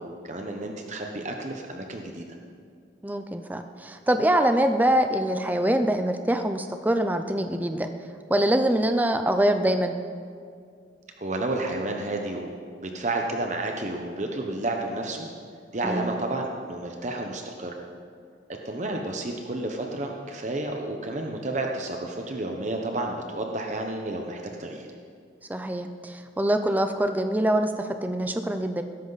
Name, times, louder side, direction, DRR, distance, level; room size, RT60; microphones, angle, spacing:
voice 1, 0.0-2.2 11.2-12.5 12.8-15.3 15.7-17.8 18.6-24.9, right 2 dB, 40° right, 3 dB, 0.9 m, -31 dB
voice 2, 3.0-7.9 8.3-10.0 15.8-16.1 25.5-28.8, right 1 dB, 10° right, 7 dB, 0.5 m, -24 dB
16.0 x 13.0 x 4.1 m, 2.2 s
head